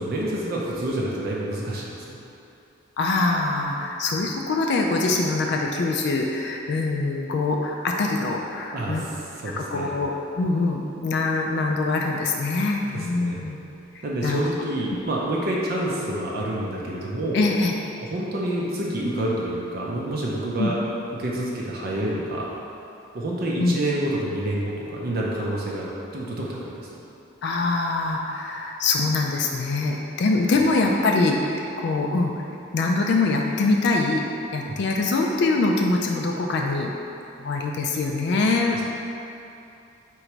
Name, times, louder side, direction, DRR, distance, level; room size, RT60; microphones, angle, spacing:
voice 1, 0.0-2.2 8.7-10.0 12.9-13.4 14.0-17.4 18.0-20.8 21.2-22.5 23.1-26.9 34.7-34.8, right 1 dB, 50° right, -4 dB, 0.5 m, -28 dB
voice 2, 3.0-9.1 9.6-13.6 14.2-14.4 17.3-17.7 20.6-20.7 23.6-23.8 27.4-32.3 32.7-34.2 34.5-36.9 37.4-38.8, left 3 dB, 60° left, 1 dB, 0.3 m, -23 dB
3.8 x 3.0 x 4.5 m, 2.8 s
head